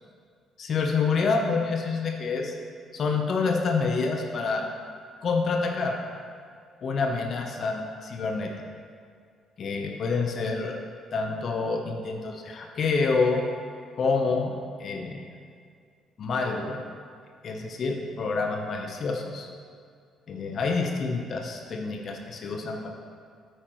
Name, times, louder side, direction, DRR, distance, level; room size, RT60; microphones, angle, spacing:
voice 1, 0.6-2.6 2.9-4.6 5.2-6.0 6.8-8.5 9.6-10.8 11.1-13.4 14.0-15.2 16.2-16.8 17.4-19.5 20.3-22.9, left 4 dB, 55° left, 2 dB, 0.9 m, -27 dB
9.1 x 8.8 x 3.1 m, 2.1 s
hypercardioid pair, 50°, 0 cm